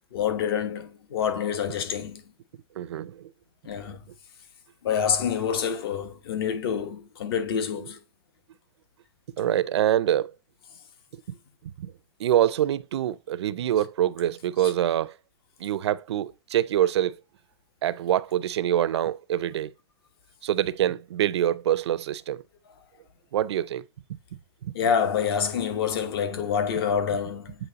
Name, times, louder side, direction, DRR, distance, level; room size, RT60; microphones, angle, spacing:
voice 1, 0.1-2.2 3.6-4.0 4.8-8.0 14.6-14.7 24.7-27.6, left 7 dB, 60° left, 1.2 m, -27 dB
voice 2, 2.8-3.3 3.8-4.0 9.4-10.3 11.6-11.9 12.2-15.2 15.6-17.2 17.8-19.7 20.4-22.4 23.3-23.8 24.1-24.2 24.6-24.7, right 11 dB, 80° right, 0.5 m, -25 dB
8.2 x 3.1 x 3.9 m
supercardioid pair, 160°, 14 cm